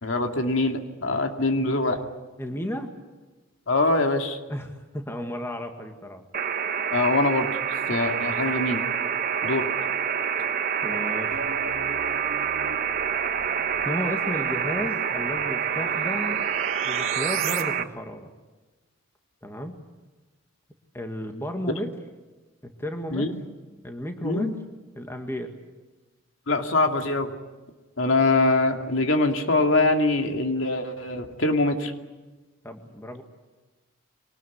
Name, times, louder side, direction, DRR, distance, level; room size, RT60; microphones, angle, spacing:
voice 1, 0.0-2.0 3.7-4.4 6.9-7.5 7.9-8.8 9.4-9.7 23.1-23.3 24.2-24.5 26.5-27.3 28.0-31.9, left 2 dB, 75° left, 5 dB, 2.5 m, -23 dB
voice 2, 2.4-2.9 4.5-6.3 10.8-11.4 13.9-16.4 16.8-18.3 19.4-19.8 20.9-22.0 22.6-23.4 23.8-24.5 25.0-25.5 32.6-33.2, equal, 10° left, 5 dB, 1.9 m, -33 dB
sound 1, 6.3-17.8, right 7 dB, 45° right, 1.1 m, -27 dB
sound 2, 11.3-17.6, right 6 dB, 90° right, 1.7 m, -37 dB
24.0 x 19.5 x 9.5 m, 1.2 s
head